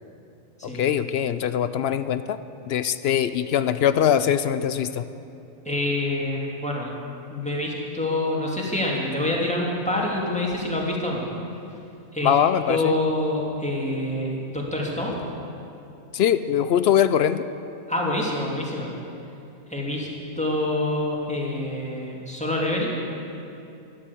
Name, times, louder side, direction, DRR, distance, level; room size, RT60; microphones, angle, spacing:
voice 1, 0.6-2.4 2.7-5.0 12.2-13.0 16.1-17.4, left 9 dB, 65° left, 13 dB, 0.7 m, -22 dB
voice 2, 5.6-6.9 7.3-11.2 12.1-12.4 12.7-15.1 17.9-18.9 19.7-20.1 20.4-22.9, left 1 dB, 5° left, -3 dB, 2.6 m, -26 dB
13.0 x 12.0 x 8.4 m, 2.7 s
omnidirectional pair, 1.4 m